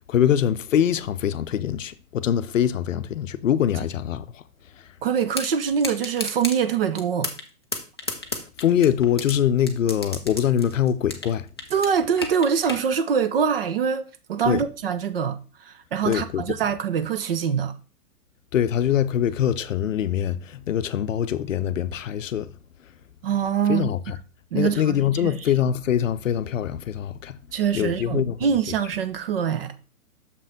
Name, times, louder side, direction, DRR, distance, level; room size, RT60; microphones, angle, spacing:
voice 1, 0.1-4.4 8.6-11.5 14.5-14.6 16.0-16.4 18.5-22.5 23.7-24.2 24.5-27.4 27.7-28.5, left 9 dB, 60° left, 0.6 m, -23 dB
voice 2, 5.0-7.3 11.7-14.0 14.3-17.7 23.2-24.1 24.5-25.4 27.5-29.8, right 7 dB, 40° right, 0.6 m, -24 dB
sound 1, 5.3-5.5 5.8-6.6 7.0-7.5 7.7-9.3 9.7-11.3 11.6-12.8, left 2 dB, 20° left, 0.3 m, -31 dB
6.6 x 5.4 x 3.5 m
figure-of-eight pair, 120°, 45 cm